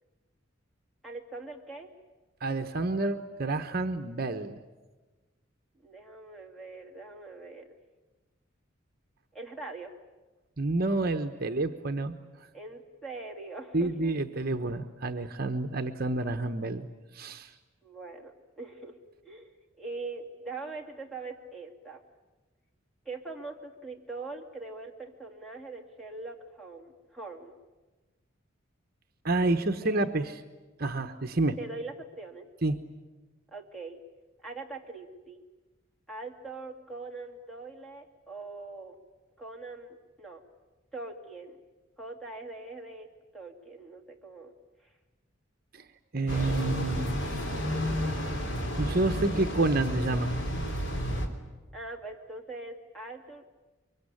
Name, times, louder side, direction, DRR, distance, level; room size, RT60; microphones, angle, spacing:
voice 1, 1.0-1.9 5.8-7.7 9.3-9.9 12.5-14.1 17.8-19.0 19.2-22.0 23.0-27.5 29.8-30.1 31.6-32.5 33.5-34.0 34.4-35.4 36.1-39.0 39.4-40.4 40.9-41.6 42.0-43.1 43.3-44.5 44.8-44.9 51.7-53.5, right 3 dB, ahead, 1 dB, 2.7 m, -42 dB
voice 2, 2.4-4.6 10.6-12.1 13.7-16.9 17.1-17.5 29.2-30.3 30.8-31.6 32.6-32.8 45.7-45.8 46.1-47.4 48.8-50.3, right 2 dB, 45° right, 7 dB, 1.0 m, -29 dB
sound 1, 46.3-51.3, equal, 65° left, 3.5 m, -31 dB
24.5 x 24.0 x 9.9 m, 1.2 s
head